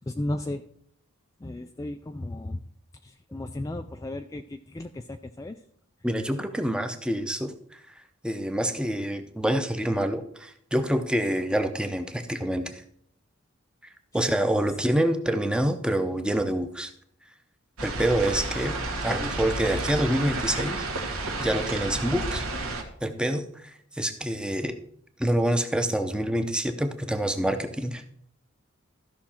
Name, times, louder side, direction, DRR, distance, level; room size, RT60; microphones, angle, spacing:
voice 1, 0.1-0.6 1.4-2.6 3.0-5.6, left 1 dB, 15° left, 6 dB, 0.4 m, -34 dB
voice 2, 6.0-7.8 8.2-12.8 14.1-16.9 17.8-18.8 19.0-22.4 23.0-23.7 24.0-24.8 25.2-28.0, right 1 dB, 5° right, 8 dB, 0.7 m, -27 dB
sound 1, 17.8-22.8, right 2 dB, 80° right, 1.7 m, -31 dB
14.0 x 5.9 x 4.4 m, 0.66 s
head